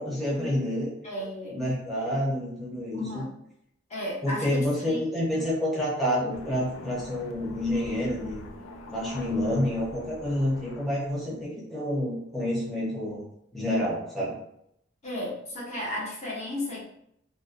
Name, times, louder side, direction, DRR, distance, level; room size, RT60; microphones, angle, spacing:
voice 1, 0.0-0.9 1.5-3.3 4.2-8.4 8.9-13.2 13.5-14.4, left 1 dB, ahead, -8 dB, 0.6 m, -28 dB
voice 2, 1.0-1.6 2.9-3.3 3.9-5.0 5.3-5.5 15.0-16.9, left 1 dB, 35° left, -5 dB, 0.8 m, -34 dB
sound 1, 6.3-11.4, left 3 dB, 80° left, 0.3 m, -44 dB
2.6 x 2.0 x 2.4 m, 0.74 s
head